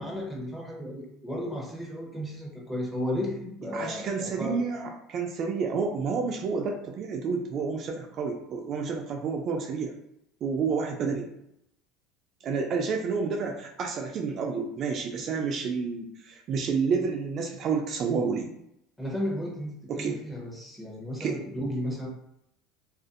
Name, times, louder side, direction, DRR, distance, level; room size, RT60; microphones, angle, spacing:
voice 1, 0.0-4.6 15.2-15.3 19.0-22.1, left 1 dB, 5° left, -2 dB, 0.8 m, -34 dB
voice 2, 3.7-9.9 10.4-11.3 12.4-18.5 19.9-20.1 21.2-21.4, right 5 dB, 45° right, 2 dB, 0.3 m, -30 dB
2.5 x 2.3 x 2.5 m, 0.78 s
supercardioid pair, 110°, 0 cm